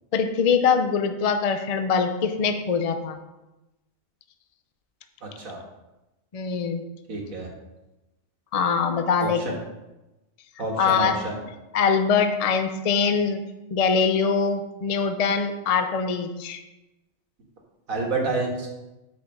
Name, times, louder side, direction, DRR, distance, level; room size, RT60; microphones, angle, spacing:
voice 1, 0.1-3.2 6.3-6.8 8.5-9.4 10.8-11.2 11.7-13.4 13.7-16.6, left 6 dB, 40° left, 7 dB, 0.5 m, -23 dB
voice 2, 5.2-5.6 7.1-7.5 9.2-9.5 10.6-11.3 17.9-18.7, right 2 dB, 80° right, -1 dB, 2.0 m, -28 dB
6.7 x 4.9 x 6.5 m, 1.0 s
omnidirectional pair, 1.4 m